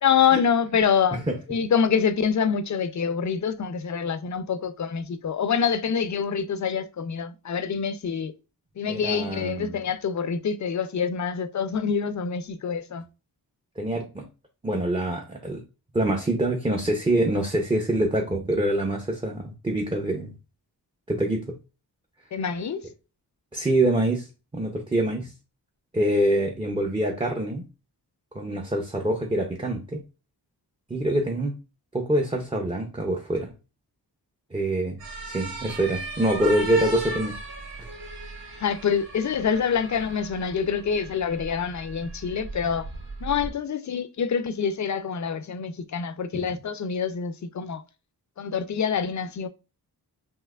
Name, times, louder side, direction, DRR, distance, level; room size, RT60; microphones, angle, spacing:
voice 1, 0.0-8.3 8.8-13.0 22.3-22.9 38.6-42.9 43.2-47.8 48.4-49.5, left 7 dB, 45° left, 0.4 m, -26 dB
voice 2, 8.9-9.8 13.8-14.3 14.6-15.6 15.9-20.3 21.1-21.5 23.5-24.3 24.5-25.3 25.9-27.6 28.3-30.0 30.9-31.5 31.9-33.5 34.5-35.0 35.3-37.3 37.8-37.9 46.3-46.5, right 1 dB, 15° right, 0.5 m, -25 dB
sound 1, 35.0-43.5, right 2 dB, 60° right, 1.4 m, -37 dB
5.6 x 2.8 x 2.3 m
wide cardioid pair, 135°, 41 cm